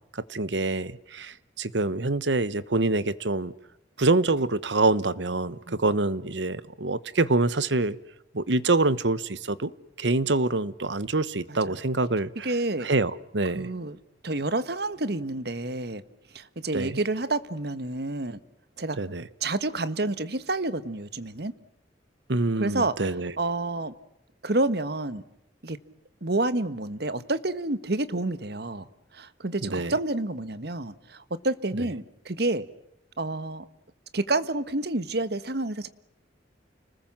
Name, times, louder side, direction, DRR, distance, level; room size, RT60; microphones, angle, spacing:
voice 1, 0.1-3.5 4.0-8.0 8.3-9.7 10.0-12.5 12.8-13.6 16.7-17.0 19.0-19.2 22.3-23.3 29.6-29.9, right 2 dB, 80° right, 1.2 m, -26 dB
voice 2, 12.4-12.9 13.5-14.0 14.2-16.0 16.3-18.4 18.8-19.0 19.4-21.5 22.6-23.1 23.4-23.9 24.4-25.2 25.6-25.8 26.2-28.9 29.1-32.6 33.2-33.7 34.1-35.9, right 2 dB, 60° right, 1.4 m, -29 dB
30.0 x 20.5 x 7.5 m
head